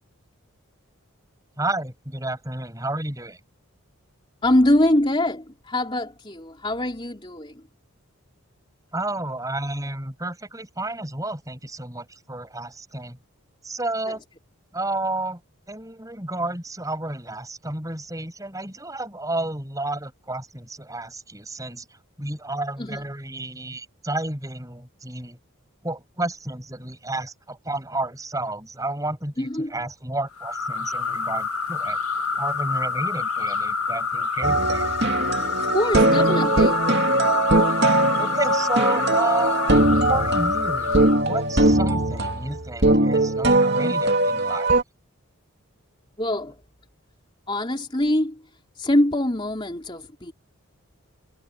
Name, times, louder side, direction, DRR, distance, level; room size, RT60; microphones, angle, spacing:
voice 1, 1.6-3.4 8.9-13.2 13.6-14.2 14.7-15.4 15.7-21.8 22.2-25.4 25.8-32.0 32.4-34.9 38.1-44.7, right 2 dB, 15° right, 7.9 m, -31 dB
voice 2, 4.4-7.5 22.8-23.0 29.4-29.7 35.6-36.8 46.2-46.5 47.5-48.4 48.8-50.3, left 1 dB, 20° left, 3.4 m, -23 dB
sound 1, 30.4-41.2, left 4 dB, 85° left, 2.3 m, -27 dB
sound 2, 34.4-44.8, right 2 dB, 50° right, 2.6 m, -20 dB
head